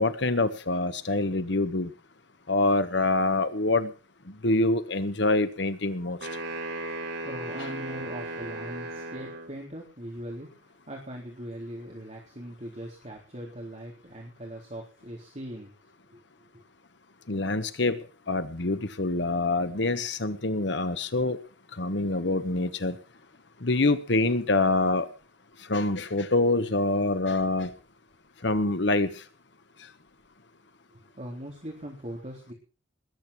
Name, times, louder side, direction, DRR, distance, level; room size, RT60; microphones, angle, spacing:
voice 1, 0.0-1.9 2.5-3.9 4.4-6.2 17.3-18.0 18.3-21.4 21.8-22.9 23.6-25.1 25.7-27.7 28.4-29.1, left 2 dB, 60° left, 11 dB, 1.2 m, -25 dB
sound 1, 6.2-9.5, right 2 dB, 65° right, 6.2 m, -36 dB
voice 2, 7.2-10.5 10.9-15.7 16.1-16.2 30.9-32.5, right 1 dB, 35° right, -2 dB, 4.0 m, -40 dB
21.0 x 8.8 x 6.2 m, 0.36 s
head